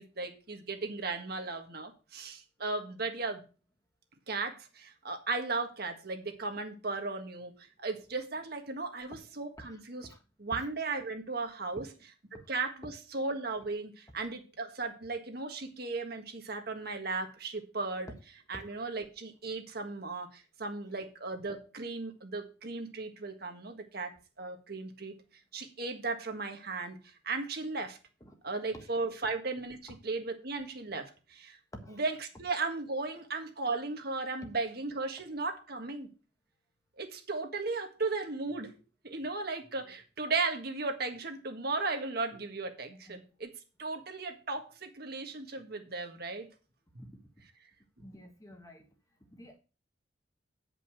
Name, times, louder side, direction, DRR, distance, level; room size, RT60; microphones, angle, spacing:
voice 1, 0.0-3.4 4.3-10.1 10.4-11.9 12.3-18.1 18.5-25.2 25.5-28.0 28.4-31.6 31.9-36.1 37.0-38.8 39.0-43.5 43.8-46.5, right 3 dB, 55° right, 5 dB, 1.6 m, -36 dB
voice 2, 9.6-10.2 10.5-10.7 11.8-12.0 12.3-12.5 18.5-18.7 28.2-28.4 28.7-28.9 29.9-30.0 31.7-32.0 43.1-43.2 47.0-47.1 48.0-48.8 49.3-49.6, equal, 15° left, 4 dB, 1.4 m, -49 dB
9.5 x 5.4 x 6.3 m, 0.33 s
head